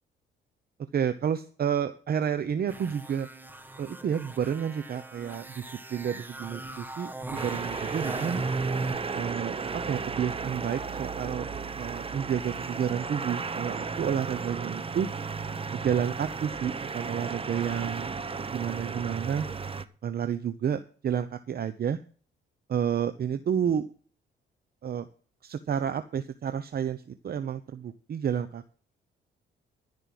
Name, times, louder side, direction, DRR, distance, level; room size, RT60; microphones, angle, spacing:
voice 1, 0.9-3.3 3.8-8.4 9.1-11.5 11.8-15.1 15.7-19.5 20.0-22.0 22.7-23.9 24.8-25.1 25.4-28.7, right 8 dB, 50° right, 11 dB, 0.9 m, -30 dB
sound 1, 2.7-9.0, right 3 dB, 10° right, 1.2 m, -37 dB
sound 2, 7.3-19.8, right 4 dB, 30° right, 1.0 m, -34 dB
14.0 x 5.5 x 7.7 m, 0.42 s
cardioid pair, 90°, 20 cm